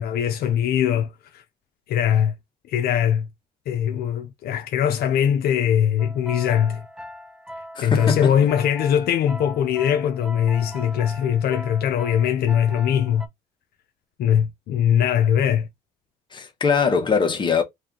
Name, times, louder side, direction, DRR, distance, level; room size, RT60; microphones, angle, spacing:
voice 1, 0.0-1.4 1.9-2.3 2.7-3.3 3.7-6.9 7.8-13.3 14.2-15.7, left 9 dB, 65° left, 0.5 m, -21 dB
sound 1, 6.0-13.3, equal, 5° right, 0.5 m, -39 dB
voice 2, 7.7-8.3 16.3-17.6, left 5 dB, 30° left, 1.2 m, -21 dB
3.2 x 2.5 x 3.7 m
cardioid pair, 110°, 17 cm